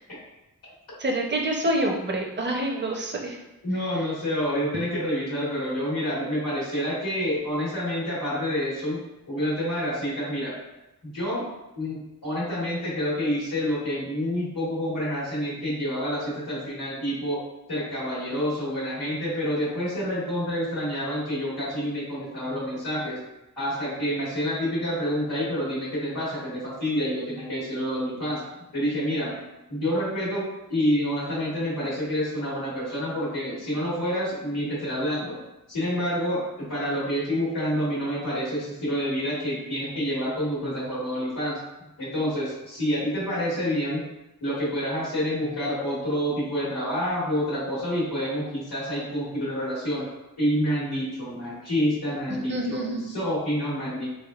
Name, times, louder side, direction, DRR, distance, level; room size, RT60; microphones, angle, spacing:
voice 1, 1.0-3.4 3.9-4.1 52.5-53.1, right 1 dB, 30° right, 1 dB, 0.6 m, -27 dB
voice 2, 3.6-9.0 9.3-10.5 11.0-11.5 11.7-17.4 17.7-23.2 23.6-28.4 28.7-29.3 29.7-35.4 35.7-41.6 42.0-44.0 44.4-50.1 50.4-54.1, equal, 85° left, -9 dB, 1.4 m, -28 dB
3.5 x 3.5 x 2.3 m, 0.97 s
wide cardioid pair, 50°, 35 cm